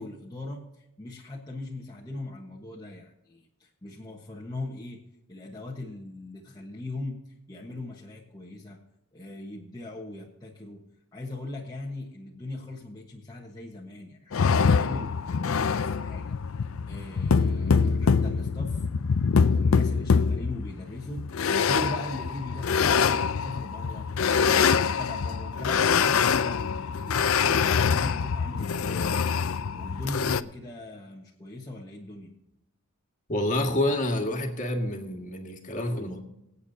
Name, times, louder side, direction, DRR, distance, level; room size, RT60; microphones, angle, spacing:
voice 1, 0.0-5.0 5.3-7.2 7.5-8.8 9.1-10.8 11.1-16.4 16.9-18.8 19.3-24.1 24.4-32.3, left 2 dB, 20° left, -3 dB, 1.3 m, -39 dB
sound 1, 14.3-30.4, left 6 dB, 70° left, 0.5 m, -24 dB
voice 2, 33.3-36.2, left 1 dB, 35° left, 3 dB, 1.8 m, -28 dB
24.5 x 8.3 x 2.8 m, 0.88 s
head